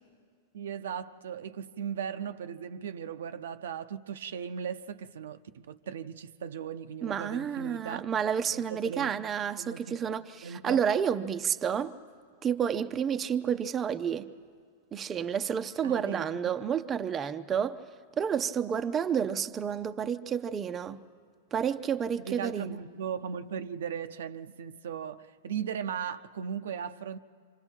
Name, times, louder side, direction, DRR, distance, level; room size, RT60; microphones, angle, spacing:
voice 1, 0.5-8.0 8.5-9.1 9.6-10.0 10.4-10.8 15.8-16.5 22.2-27.2, right 8 dB, 80° right, 0.6 m, -37 dB
voice 2, 7.0-11.9 12.4-14.3 14.9-17.8 18.2-21.0 21.5-22.8, right 8 dB, 25° right, 0.6 m, -30 dB
27.5 x 25.5 x 4.5 m
hypercardioid pair, 125°, 0 cm